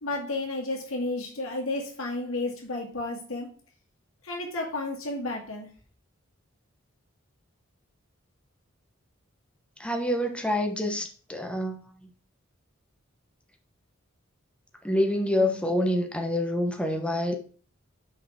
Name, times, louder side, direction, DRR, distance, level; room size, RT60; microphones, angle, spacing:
voice 1, 0.0-3.5 4.2-5.7, left 2 dB, 90° left, -1 dB, 2.4 m, -32 dB
voice 2, 9.8-11.9 14.8-17.3, left 1 dB, 5° left, 3 dB, 1.2 m, -27 dB
6.4 x 4.8 x 6.4 m, 0.40 s
head